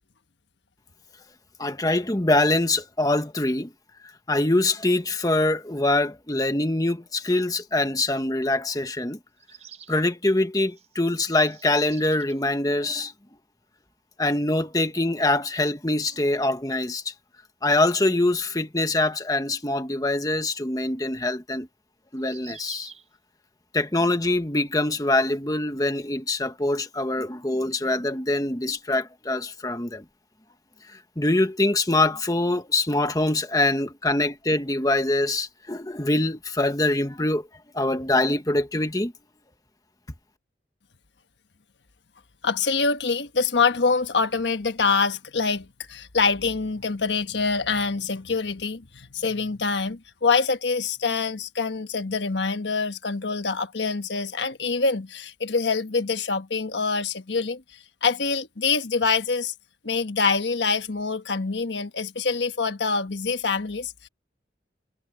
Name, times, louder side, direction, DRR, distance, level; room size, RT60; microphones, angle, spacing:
voice 1, 1.6-3.7 4.3-9.2 9.9-13.1 14.2-17.1 17.6-21.7 22.1-22.9 23.7-30.0 31.2-37.4 37.7-39.1, left 2 dB, 20° left, 1.3 m, -24 dB
sound 1, 9.4-10.0 10.7-12.4 13.6-13.7 13.9-14.0 16.4-16.5 19.7-19.8 22.1-23.1, right 8 dB, 35° right, 4.8 m, -49 dB
voice 2, 42.4-57.6 58.0-59.5 59.8-64.1, left 4 dB, 80° left, 1.3 m, -25 dB
head